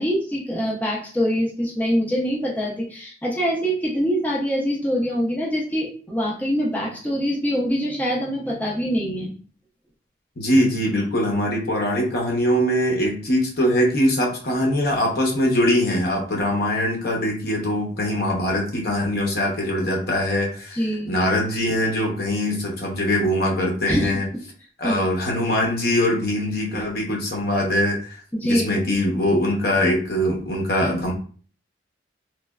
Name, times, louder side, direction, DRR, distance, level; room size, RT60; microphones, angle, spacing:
voice 1, 0.0-9.3 20.7-21.2 23.9-24.1 24.8-25.0 28.3-28.8, equal, 10° left, -4 dB, 0.4 m, -24 dB
voice 2, 10.4-20.8 21.1-24.2 24.8-31.1, left 1 dB, 55° left, 0 dB, 0.7 m, -22 dB
3.1 x 2.1 x 2.2 m, 0.42 s
head